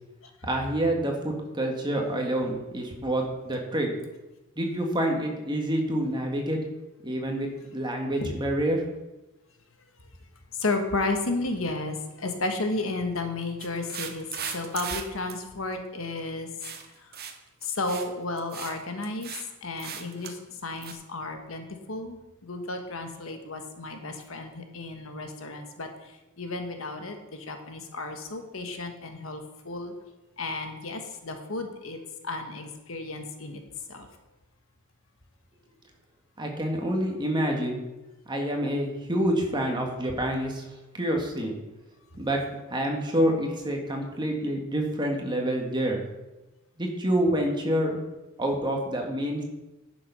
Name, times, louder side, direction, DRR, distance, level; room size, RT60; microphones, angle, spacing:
voice 1, 0.4-3.9 4.6-6.6 7.0-8.8 36.4-37.8 38.3-40.6 40.9-41.5 42.2-42.4 42.7-46.0 46.8-48.0 48.4-49.4, right 1 dB, 20° right, 1 dB, 1.7 m, -27 dB
voice 2, 10.5-16.5 17.0-17.2 17.6-19.3 19.6-29.9 30.4-32.0 32.2-33.6 33.9-34.1, left 2 dB, 75° left, 5 dB, 1.4 m, -33 dB
sound 1, 13.6-15.0 15.3-15.4 16.6-16.9 17.1-17.3 17.6-18.1 18.4-18.8 19.0-19.4 19.8-20.3 20.8-20.9, right 8 dB, 50° right, 1.1 m, -37 dB
10.5 x 6.9 x 5.6 m, 1.0 s
head